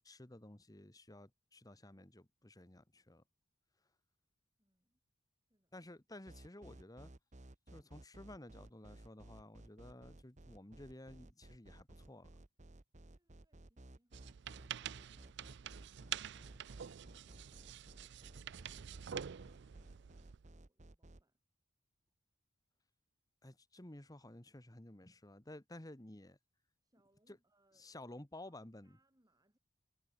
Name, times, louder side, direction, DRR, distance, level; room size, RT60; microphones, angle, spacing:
voice 1, 0.0-3.2 5.7-7.1 7.7-12.3 23.4-26.4 27.3-27.4 27.8-29.0, left 1 dB, 20° left, 1.4 m, -54 dB
voice 2, 4.6-5.0 5.5-5.7 26.8-28.2 28.4-29.6, right 1 dB, 20° right, 5.8 m, -79 dB
sound 1, 6.3-21.2, right 1 dB, 40° right, 1.1 m, -57 dB
sound 2, 14.1-20.5, right 9 dB, 60° right, 0.4 m, -47 dB
head